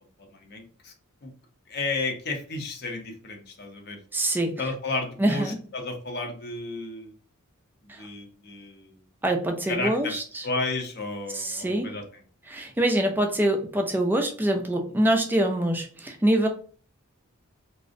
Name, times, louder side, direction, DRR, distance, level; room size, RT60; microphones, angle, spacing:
voice 1, 0.2-0.9 1.2-1.3 1.7-4.0 4.6-7.1 7.8-9.0 9.7-12.2, left 3 dB, 50° left, 3 dB, 0.5 m, -33 dB
voice 2, 4.1-4.6 5.2-5.6 7.9-8.0 9.2-10.4 11.3-11.9 12.5-16.5, right 1 dB, 10° right, 3 dB, 0.3 m, -24 dB
2.5 x 2.0 x 2.5 m, 0.43 s
head